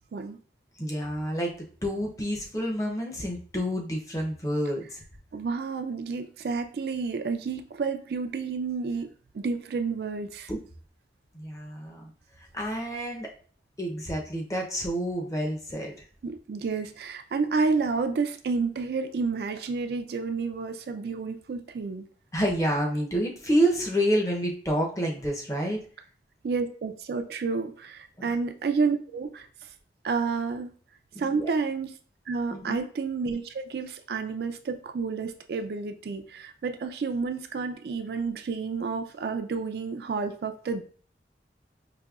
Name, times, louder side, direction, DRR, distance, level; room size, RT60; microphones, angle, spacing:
voice 1, 0.8-1.5 1.8-5.0 10.5-10.6 11.3-12.1 12.5-13.3 13.8-15.9 22.3-25.8 31.1-31.5 32.5-32.8, equal, 20° left, 0 dB, 0.6 m, -28 dB
voice 2, 5.3-9.1 9.3-10.5 16.2-22.1 26.4-29.7 30.0-30.7 31.2-31.9 32.3-40.8, right 4 dB, 65° right, 7 dB, 0.3 m, -30 dB
5.0 x 2.7 x 2.3 m, 0.43 s
head